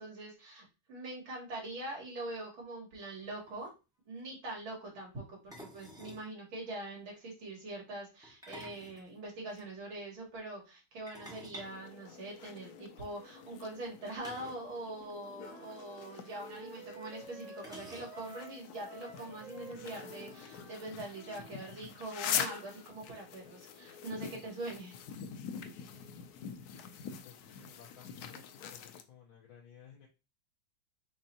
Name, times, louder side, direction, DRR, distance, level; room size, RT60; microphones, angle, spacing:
voice 1, 0.0-3.7 4.1-25.0, right 2 dB, 75° right, -2 dB, 2.8 m, -43 dB
sound 1, 3.2-3.3 3.5-3.7 5.5-6.3 8.2-9.6 11.1-12.7 14.2-14.7 15.0-15.1 15.4-15.5 16.6-16.7 17.6-18.4, equal, 5° right, 0.4 m, -51 dB
sound 2, 11.6-29.0, left 8 dB, 90° left, 0.8 m, -44 dB
Wind instrument woodwind instrument, 15.4-21.6, right 2 dB, 35° right, 1.0 m, -51 dB
voice 2, 27.2-28.4 28.7-30.1, left 8 dB, 70° left, -2 dB, 1.7 m, -56 dB
5.3 x 3.3 x 2.8 m, 0.29 s
omnidirectional pair, 2.2 m